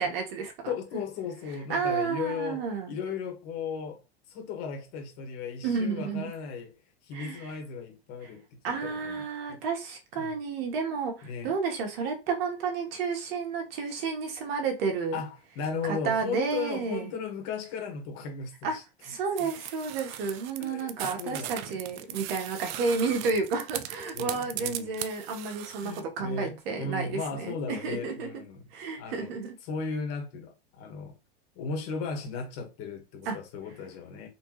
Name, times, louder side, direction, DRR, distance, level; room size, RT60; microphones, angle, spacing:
voice 1, 0.0-0.7 1.7-2.9 5.6-6.2 7.1-7.5 8.6-15.2 15.8-17.1 18.6-18.8 19.0-28.3 28.7-29.5 33.2-33.4, right 5 dB, 65° right, 1.4 m, -31 dB
voice 2, 0.7-4.0 4.3-6.7 7.0-9.2 9.5-9.6 10.2-10.4 11.2-11.5 15.1-18.8 19.4-19.5 20.6-20.9 21.2-21.8 24.1-25.0 25.8-28.6 29.0-29.3 29.6-31.1 31.5-34.3, left 5 dB, 50° left, 1.6 m, -36 dB
sound 1, 19.4-26.0, right 13 dB, 50° right, 0.5 m, -38 dB
4.2 x 2.8 x 3.1 m
supercardioid pair, 130°, 32 cm